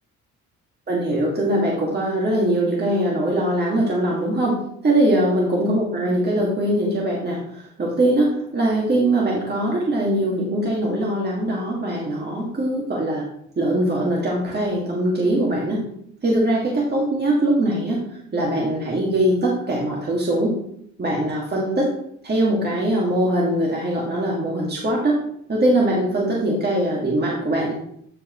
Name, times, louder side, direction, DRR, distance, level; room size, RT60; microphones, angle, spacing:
voice 1, 0.9-13.2 13.6-15.8 16.2-18.0 18.3-20.5 21.0-21.9 22.2-25.2 25.5-27.7, right 1 dB, 35° right, -3 dB, 2.2 m, -21 dB
14.0 x 5.0 x 3.1 m, 0.71 s
cardioid pair, 90°, 30 cm